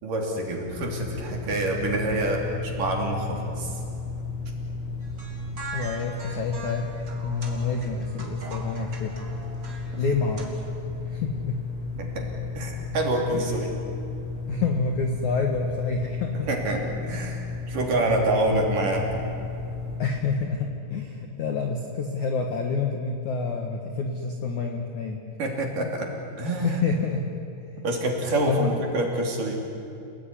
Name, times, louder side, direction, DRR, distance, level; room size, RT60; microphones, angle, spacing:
voice 1, 0.0-3.8 9.9-10.0 11.9-12.3 12.5-13.7 16.3-19.2 25.4-26.1 26.4-26.8 27.8-29.6, right 1 dB, 45° right, 0 dB, 4.2 m, -27 dB
sound 1, 0.6-20.0, left 4 dB, 90° left, 9.0 m, -34 dB
sound 2, 5.0-10.4, right 3 dB, 25° right, 3.3 m, -41 dB
voice 2, 5.7-6.9 7.2-9.3 9.9-10.6 11.1-11.7 13.3-13.6 14.5-16.5 17.8-17.9 20.0-25.2 26.6-27.3 28.5-28.7, left 4 dB, 60° left, 2 dB, 2.1 m, -28 dB
29.5 x 18.5 x 9.8 m, 2.7 s
omnidirectional pair, 5.6 m